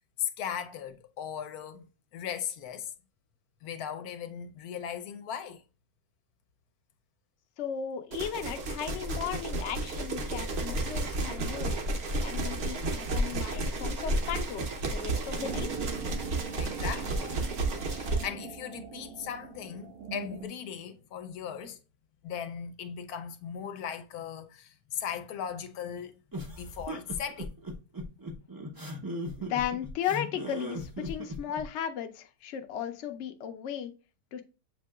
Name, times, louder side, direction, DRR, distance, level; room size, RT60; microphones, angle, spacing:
voice 1, 0.2-1.9 2.1-2.9 3.6-5.6 16.6-17.3 17.8-21.8 22.2-26.2 26.6-27.5, left 8 dB, 80° left, 1.1 m, -38 dB
voice 2, 7.6-11.8 12.2-15.7 29.4-33.9 34.3-34.4, left 9 dB, 65° left, 0.8 m, -36 dB
sound 1, 8.1-18.3, right 2 dB, 55° right, 0.8 m, -32 dB
sound 2, 15.4-20.5, right 5 dB, 80° right, 1.4 m, -41 dB
sound 3, 26.3-31.6, equal, 30° right, 0.4 m, -38 dB
7.4 x 2.8 x 2.3 m
omnidirectional pair, 1.6 m